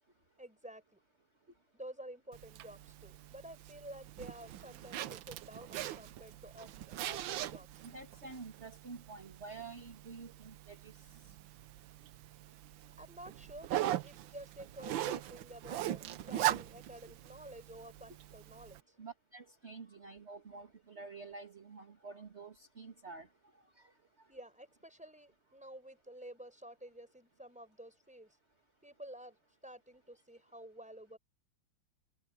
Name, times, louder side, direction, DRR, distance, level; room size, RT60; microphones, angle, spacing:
voice 1, 0.4-1.0 1.7-6.7 7.0-7.9 13.0-18.9 24.3-28.3 28.8-29.4 29.6-31.2, right 1 dB, 5° right, 4.9 m, -51 dB
Zipper (clothing), 2.3-18.8, right 12 dB, 75° right, 1.5 m, -41 dB
voice 2, 7.8-11.0 19.0-23.3 23.8-23.9, right 4 dB, 35° right, 2.6 m, -49 dB
omnidirectional pair, 2.1 m